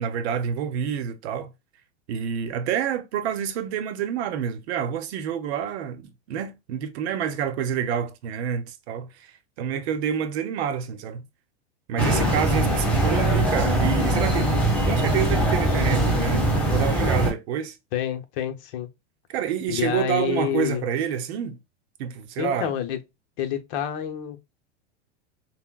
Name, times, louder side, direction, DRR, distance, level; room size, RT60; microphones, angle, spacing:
voice 1, 0.0-1.5 2.1-9.3 9.6-11.2 11.9-14.5 14.9-17.8 19.3-21.6 22.0-22.7, right 8 dB, 70° right, 0.8 m, -28 dB
sound 1, 12.0-17.3, right 1 dB, 5° left, 1.5 m, -22 dB
voice 2, 17.9-18.9 19.7-20.9 22.4-23.0 23.4-24.4, left 10 dB, 55° left, 0.8 m, -28 dB
5.6 x 2.2 x 2.3 m
supercardioid pair, 130°, 34 cm